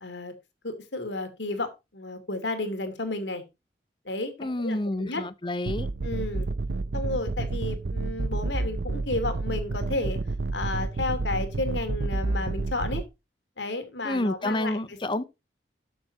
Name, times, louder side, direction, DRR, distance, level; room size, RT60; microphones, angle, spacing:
voice 1, 0.0-0.3 0.6-3.4 4.0-4.3 4.6-5.2 6.0-6.5 6.9-10.2 10.5-13.0 13.6-15.0, left 2 dB, 90° left, 2.7 m, -32 dB
voice 2, 4.4-5.9 14.0-15.2, left 1 dB, 30° left, 0.7 m, -29 dB
sound 1, 5.7-13.0, right 3 dB, 80° right, 0.7 m, -30 dB
13.0 x 6.9 x 4.1 m
head